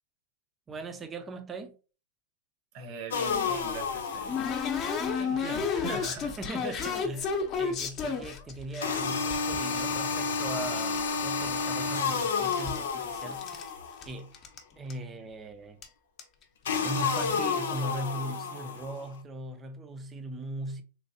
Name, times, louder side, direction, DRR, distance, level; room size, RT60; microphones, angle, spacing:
voice 1, 0.7-1.7 6.4-13.8 14.1-14.3 14.8-15.8 16.8-20.8, right 2 dB, 20° right, 0.5 m, -39 dB
voice 2, 2.7-4.6 5.1-6.4 6.6-6.8, right 4 dB, 45° right, 0.9 m, -41 dB
sound 1, 3.1-5.1 8.8-14.1 16.7-19.1, left 5 dB, 90° left, 0.7 m, -31 dB
sound 2, 3.3-8.8 9.3-11.1 11.3-12.1 12.3-13.7 14.0-14.1 14.3-14.6 14.9-15.0 15.8-15.9 16.2-16.4 17.0-17.3, left 5 dB, 30° left, 0.8 m, -32 dB
3.3 x 3.3 x 2.7 m
supercardioid pair, 140°, 0 cm